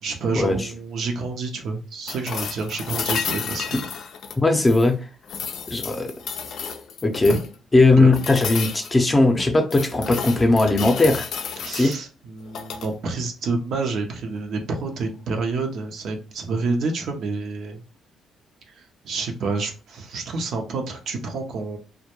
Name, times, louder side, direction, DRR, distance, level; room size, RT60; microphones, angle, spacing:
voice 1, 0.0-3.7 7.3-7.4 8.0-8.1 11.6-17.8 18.8-21.8, right 3 dB, 70° right, 0.6 m, -28 dB
sound 1, 2.1-4.9 5.3-7.5 8.1-8.9 9.4-12.0 12.5-12.9 14.9-15.0, left 6 dB, 70° left, 0.4 m, -32 dB
voice 2, 4.4-5.0 5.7-6.1 7.0-7.4 7.7-11.3 11.7-11.9, left 2 dB, 20° left, 0.5 m, -18 dB
2.2 x 2.1 x 2.9 m
cardioid pair, 90°, 0 cm